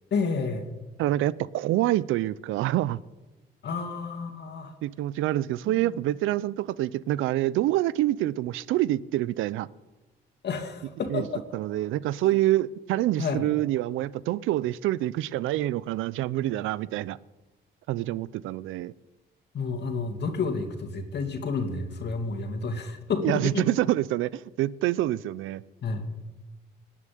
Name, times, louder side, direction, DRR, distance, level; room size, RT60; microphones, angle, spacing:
voice 1, 0.1-0.7 3.6-4.7 5.7-6.0 10.4-11.4 12.2-12.3 13.2-13.5 19.5-23.6 25.8-26.1, left 4 dB, 60° left, 5 dB, 2.5 m, -30 dB
voice 2, 1.0-3.0 4.8-9.7 11.1-11.2 11.5-17.2 17.9-18.9 23.2-25.6, right 15 dB, 90° right, 20 dB, 0.5 m, -26 dB
19.5 x 7.4 x 9.3 m, 1.1 s
cardioid pair, 90°, 20 cm